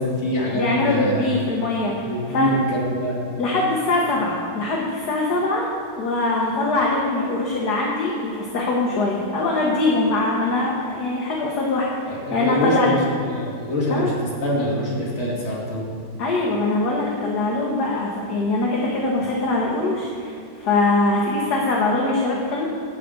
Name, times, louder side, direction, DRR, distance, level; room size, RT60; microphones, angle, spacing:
voice 1, 0.0-1.3 2.0-3.2 12.1-13.0 13.3-15.9, equal, 35° left, -6 dB, 2.5 m, -24 dB
voice 2, 0.5-2.5 3.4-5.7 6.0-13.0 13.9-14.1 16.2-22.7, left 2 dB, 55° left, -2 dB, 1.6 m, -22 dB
12.0 x 5.0 x 8.0 m, 2.4 s
omnidirectional pair, 2.3 m